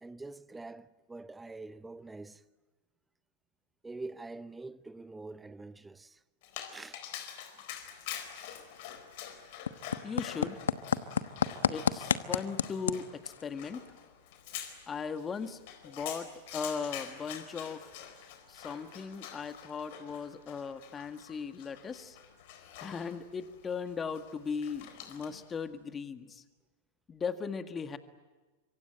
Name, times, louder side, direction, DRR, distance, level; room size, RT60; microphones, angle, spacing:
voice 1, 0.0-2.4 3.8-6.2 6.7-7.0 18.6-18.7, right 3 dB, 10° right, 1.0 m, -45 dB
Dog, 6.4-25.5, left 9 dB, 55° left, 4.2 m, -46 dB
sound 1, 7.7-25.8, left 8 dB, 75° left, 1.1 m, -39 dB
voice 2, 10.0-10.6 11.7-13.8 14.9-17.8 18.5-22.2 22.8-26.4 27.1-28.0, left 5 dB, 20° left, 1.8 m, -38 dB
26.5 x 24.0 x 9.0 m
hypercardioid pair, 100°, 0 cm